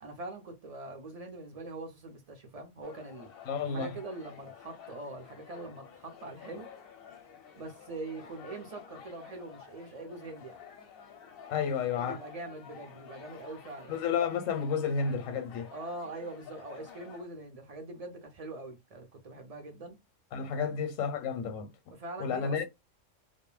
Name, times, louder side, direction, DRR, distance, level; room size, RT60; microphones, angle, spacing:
voice 1, 0.0-3.3 3.7-6.7 7.6-10.6 11.6-14.1 15.7-20.0 20.5-20.8 21.9-22.7, right 2 dB, 50° right, 0.4 m, -43 dB
sound 1, 2.8-17.2, left 7 dB, 60° left, 0.7 m, -51 dB
voice 2, 3.5-3.9 11.5-12.2 13.9-15.7 20.3-21.7 22.2-22.7, left 6 dB, 80° left, 1.0 m, -31 dB
2.2 x 2.0 x 3.0 m
omnidirectional pair, 1.3 m